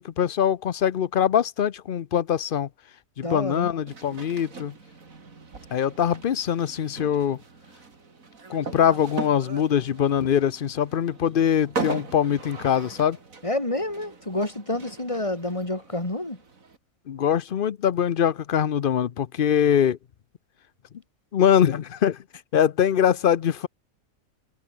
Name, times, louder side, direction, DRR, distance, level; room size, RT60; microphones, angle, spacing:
voice 1, 0.0-2.7 3.2-4.7 5.7-7.4 8.5-13.2 17.1-20.0 21.3-22.2 22.5-23.7, left 9 dB, 55° left, 0.6 m, -23 dB
voice 2, 3.2-3.7 13.4-16.4, left 1 dB, 20° left, 3.4 m, -28 dB
sound 1, 3.9-16.8, right 4 dB, 55° right, 3.1 m, -39 dB
omnidirectional pair, 1.7 m